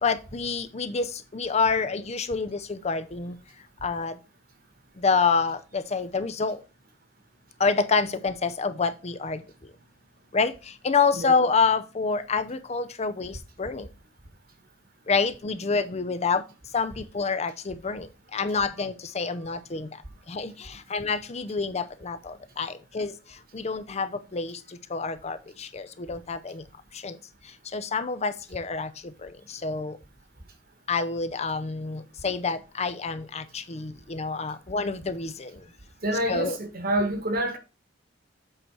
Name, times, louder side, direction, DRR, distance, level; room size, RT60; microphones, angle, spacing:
voice 1, 0.0-3.4 3.8-4.2 5.0-6.6 7.6-9.4 10.3-13.9 15.1-16.4 16.7-19.9 20.3-23.1 23.5-26.6 26.9-27.2 27.7-30.0 30.9-35.6 36.3-36.6, left 4 dB, 35° left, 0.6 m, -28 dB
voice 2, 36.0-37.6, right 1 dB, 50° right, 1.5 m, -27 dB
7.7 x 4.5 x 4.7 m
head